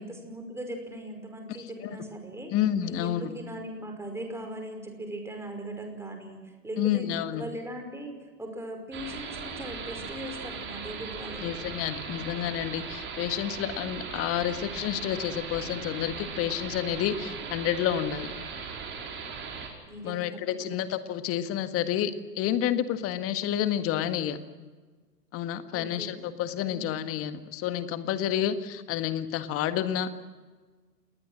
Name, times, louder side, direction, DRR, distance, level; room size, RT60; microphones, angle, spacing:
voice 1, 0.0-2.5 2.9-7.1 7.3-11.5 19.9-20.8 25.7-26.2 26.7-27.0, right 1 dB, 5° right, 4 dB, 5.3 m, -39 dB
voice 2, 2.5-3.3 6.8-7.4 11.4-18.3 20.0-24.4 25.3-30.1, left 10 dB, 30° left, 10 dB, 1.7 m, -29 dB
sound 1, 8.9-19.7, right 5 dB, 25° right, 5.2 m, -38 dB
28.0 x 20.5 x 6.4 m, 1.4 s
figure-of-eight pair, 110°, 48 cm